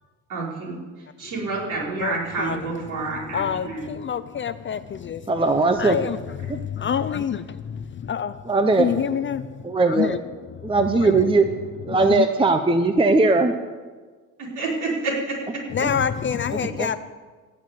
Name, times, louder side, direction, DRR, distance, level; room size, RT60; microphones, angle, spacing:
voice 1, 0.3-3.9 14.4-15.6, right 3 dB, 60° right, -4 dB, 5.0 m, -29 dB
voice 2, 2.0-2.7 3.3-5.3 5.8-8.4 8.8-10.2 10.6-10.7 11.0-11.3 11.9-12.3 15.7-17.0, left 8 dB, 35° left, 13 dB, 0.5 m, -27 dB
voice 3, 5.3-6.0 8.5-8.9 9.6-10.2 10.6-11.5 11.8-13.5 15.8-15.9 16.5-16.9, right 3 dB, 15° right, 7 dB, 0.7 m, -19 dB
15.5 x 6.7 x 9.5 m, 1.4 s
cardioid pair, 125°, 35 cm